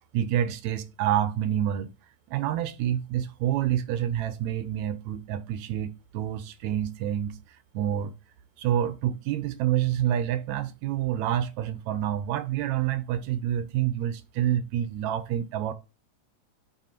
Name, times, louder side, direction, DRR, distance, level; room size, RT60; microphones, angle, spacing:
voice 1, 0.1-1.9 2.3-7.4 7.7-8.2 8.6-15.7, right 11 dB, 80° right, 2.0 m, -28 dB
5.7 x 3.8 x 5.9 m
omnidirectional pair, 3.4 m